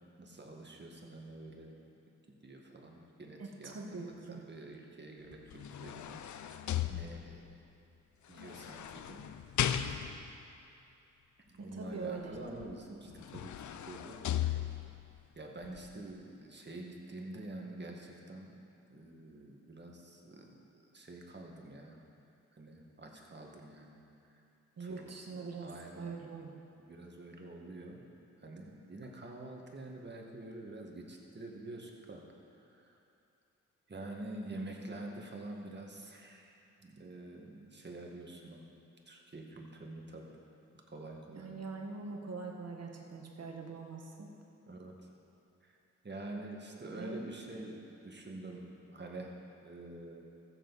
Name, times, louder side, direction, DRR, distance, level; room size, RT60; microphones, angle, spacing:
voice 1, 0.2-1.8 2.4-7.6 8.3-9.3 11.5-14.6 15.4-18.6 18.9-22.0 22.5-24.0 24.3-24.4 24.8-26.2 26.8-28.0 28.4-32.2 32.7-33.0 33.9-38.6 39.1-40.4 40.9-41.5 44.7-45.1 45.6-45.8 46.0-49.3 49.6-50.2, right 2 dB, 35° right, 0 dB, 1.9 m, -47 dB
voice 2, 3.4-4.4 11.6-12.4 24.8-26.6 41.3-44.3 46.9-47.3, right 4 dB, 50° right, 1 dB, 1.6 m, -43 dB
sound 1, 5.3-7.5 8.4-10.4 12.6-12.7 13.1-15.1 15.6-15.8, left 10 dB, 65° left, 0.6 m, -37 dB
14.0 x 7.8 x 4.2 m, 2.7 s
supercardioid pair, 50°, 32 cm